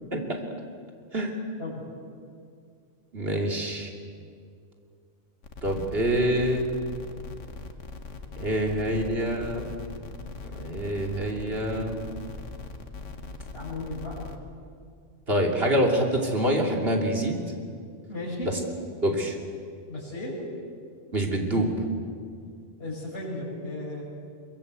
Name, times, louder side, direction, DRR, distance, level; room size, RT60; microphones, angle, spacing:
voice 1, 0.1-0.4 1.1-1.3 3.1-3.9 5.6-6.7 8.4-9.7 10.6-12.0 15.3-17.4 18.4-18.6 19.0-19.4 21.1-21.7, right 1 dB, 55° right, 1 dB, 3.2 m, -26 dB
sound 1, 5.4-14.4, left 3 dB, 85° left, 1.9 m, -40 dB
voice 2, 13.5-14.2 18.1-18.5 19.9-20.3 22.8-24.0, left 2 dB, 55° left, -5 dB, 6.2 m, -35 dB
22.5 x 22.5 x 8.2 m, 2.3 s
omnidirectional pair, 1.2 m